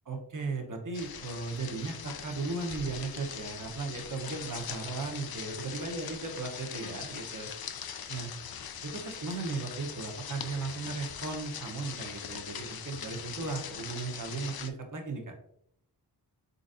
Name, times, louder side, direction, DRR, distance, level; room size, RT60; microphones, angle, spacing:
voice 1, 0.1-7.5 8.1-8.3 8.8-15.3, right 3 dB, 50° right, 3 dB, 0.9 m, -36 dB
sound 1, 0.9-14.7, left 8 dB, 65° left, 0.5 m, -41 dB
4.5 x 3.9 x 2.5 m, 0.72 s
wide cardioid pair, 80°, 40 cm